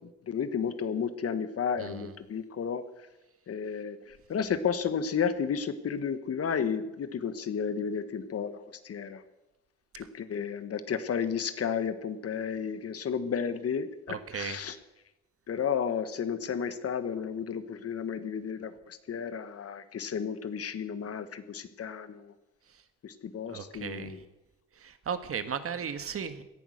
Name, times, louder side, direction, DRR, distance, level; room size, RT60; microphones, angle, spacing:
voice 1, 0.3-2.8 3.5-9.2 10.0-14.8 15.5-22.3 23.0-24.2, left 7 dB, 50° left, 12 dB, 1.3 m, -32 dB
voice 2, 1.8-2.1 14.1-14.6 23.5-24.2 24.8-26.4, right 7 dB, 50° right, 11 dB, 1.5 m, -36 dB
17.0 x 11.0 x 6.5 m, 0.98 s
cardioid pair, 90°, 30 cm